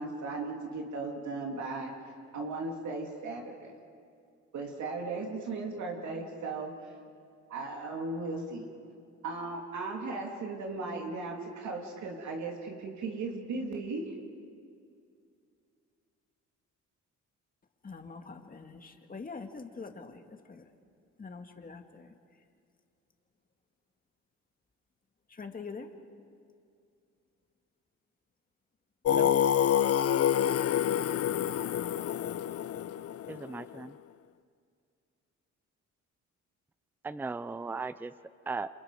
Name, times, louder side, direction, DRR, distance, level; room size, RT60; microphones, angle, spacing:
voice 1, 0.0-1.9 2.3-3.7 4.5-6.7 7.5-8.6 9.2-14.1, right 3 dB, 70° right, 0 dB, 2.9 m, -36 dB
voice 2, 17.8-20.7 21.2-22.1 25.3-25.9, left 4 dB, 30° left, 5 dB, 1.9 m, -44 dB
Singing, 29.1-33.8, left 10 dB, 50° left, 0.6 m, -27 dB
voice 3, 33.3-33.9 37.0-38.1 38.5-38.7, right 4 dB, 5° right, 14 dB, 0.5 m, -37 dB
29.0 x 27.0 x 4.9 m, 2.4 s
cardioid pair, 105°, 30 cm